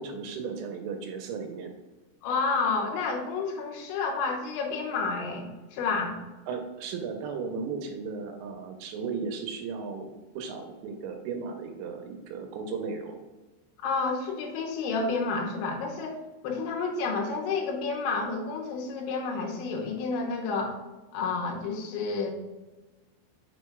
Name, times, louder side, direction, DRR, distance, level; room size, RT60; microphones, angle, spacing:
voice 1, 0.0-1.7 6.5-10.1 10.4-13.2, right 5 dB, 90° right, 5 dB, 3.1 m, -35 dB
voice 2, 2.2-6.2 13.8-20.8 21.1-22.3, left 4 dB, 85° left, 0 dB, 3.2 m, -30 dB
7.1 x 6.1 x 2.3 m, 1.2 s
omnidirectional pair, 5.3 m